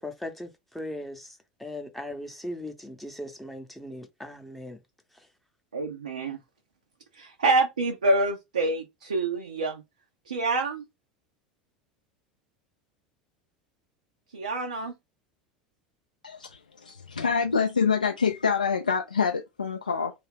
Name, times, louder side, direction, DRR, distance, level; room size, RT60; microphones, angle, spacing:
voice 1, 0.0-4.8, left 1 dB, 5° left, 0.7 m, -38 dB
voice 2, 5.7-6.4 7.2-9.8 10.3-10.8 14.3-14.9, right 2 dB, 75° right, 0.5 m, -26 dB
voice 3, 16.2-20.1, left 6 dB, 80° left, 0.4 m, -26 dB
2.4 x 2.2 x 3.4 m
figure-of-eight pair, 75°, 4 cm